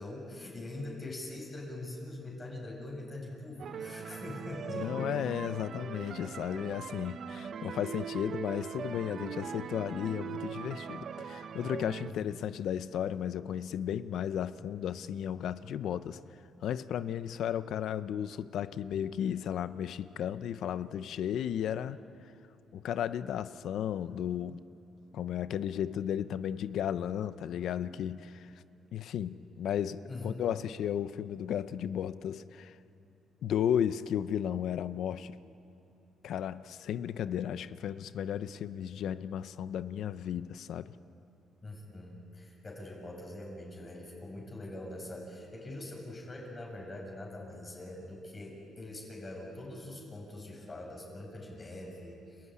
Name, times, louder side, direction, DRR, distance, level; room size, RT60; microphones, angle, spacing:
voice 1, 0.0-5.1 12.0-12.2 30.1-30.3 41.6-52.5, left 1 dB, 30° left, 7.7 m, -43 dB
sound 1, 3.6-12.1, right 7 dB, 60° right, 1.1 m, -41 dB
voice 2, 4.7-16.2 16.6-22.0 22.7-24.6 25.1-28.5 28.9-32.8 33.4-35.4 36.2-40.9, left 9 dB, 75° left, 0.7 m, -34 dB
30.0 x 15.5 x 9.8 m
cardioid pair, 90°, 0 cm